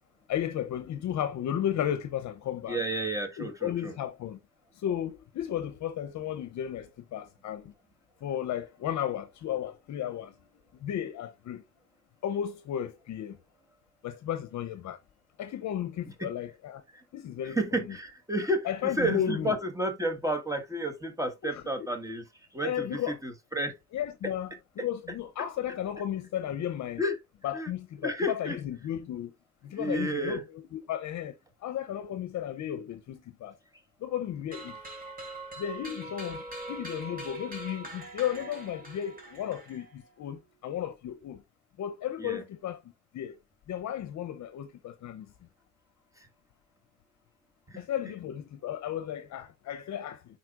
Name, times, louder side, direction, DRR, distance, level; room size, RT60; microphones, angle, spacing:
voice 1, 0.3-2.8 3.4-4.4 4.8-6.9 7.1-7.7 8.2-10.3 10.8-11.6 12.2-13.4 14.0-15.0 15.4-16.8 17.1-17.8 18.6-19.5 21.4-21.6 22.6-23.2 23.9-24.5 24.8-27.0 27.4-29.3 29.7-30.4 30.7-31.3 31.6-33.5 34.0-34.8 35.6-36.4 36.7-39.9 40.2-41.4 41.8-42.8 43.1-43.4 43.7-45.3 47.8-50.2, left 10 dB, 65° left, 0.7 m, -34 dB
voice 2, 2.7-3.9 16.2-16.3 16.9-17.0 17.4-22.3 22.5-23.8 27.0-27.2 27.5-27.7 28.0-28.6 29.7-30.4 42.2-42.4 47.7-47.8, right 1 dB, 10° right, 1.6 m, -31 dB
sound 1, 34.5-40.1, right 2 dB, 30° right, 3.2 m, -42 dB
9.4 x 4.2 x 2.4 m
cardioid pair, 90°, 30 cm